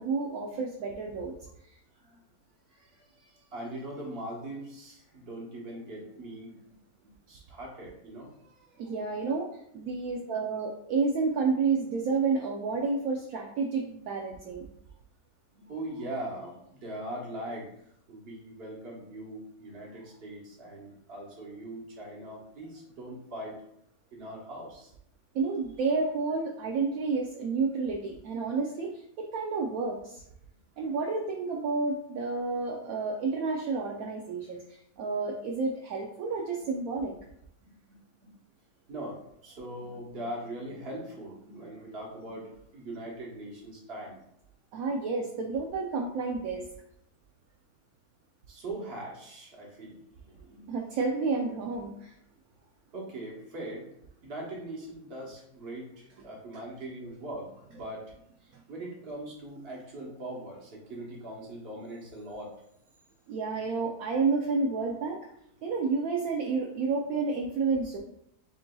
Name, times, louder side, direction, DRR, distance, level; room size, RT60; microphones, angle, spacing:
voice 1, 0.0-1.3 8.8-9.5 9.7-14.7 25.3-30.2 30.8-37.1 44.7-46.6 50.7-52.1 63.3-65.2 65.6-68.0, right 4 dB, 70° right, 0 dB, 1.0 m, -30 dB
voice 2, 2.7-9.1 15.5-17.7 18.1-23.6 24.1-24.9 30.5-30.9 37.6-38.4 38.9-44.2 48.5-50.7 52.9-53.9 54.2-58.1 58.4-62.6, right 1 dB, 40° right, -3 dB, 1.3 m, -41 dB
7.5 x 2.6 x 2.3 m, 0.75 s
omnidirectional pair, 1.7 m